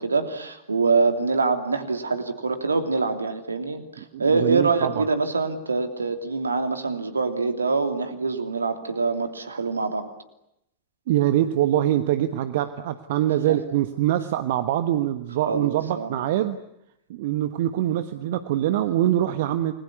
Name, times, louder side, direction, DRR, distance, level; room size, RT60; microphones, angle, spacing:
voice 1, 0.0-10.1 15.5-16.3, right 4 dB, 75° right, 8 dB, 2.9 m, -25 dB
voice 2, 4.1-5.0 11.1-16.6 17.1-19.7, right 12 dB, 55° right, 11 dB, 1.2 m, -24 dB
29.0 x 21.0 x 9.7 m, 0.81 s
figure-of-eight pair, 90°, 0 cm